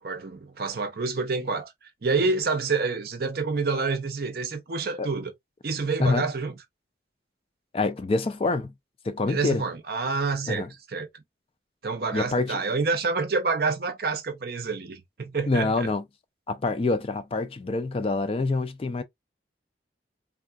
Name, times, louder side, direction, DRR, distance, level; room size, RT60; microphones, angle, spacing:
voice 1, 0.0-1.7 2.0-5.3 5.6-6.5 9.3-11.1 11.8-15.9, right 4 dB, 55° right, 0.6 m, -28 dB
voice 2, 7.7-8.7 9.0-9.6 10.5-10.7 12.1-12.6 15.5-16.0 16.5-19.0, left 3 dB, 30° left, 0.3 m, -26 dB
3.5 x 2.3 x 2.2 m
head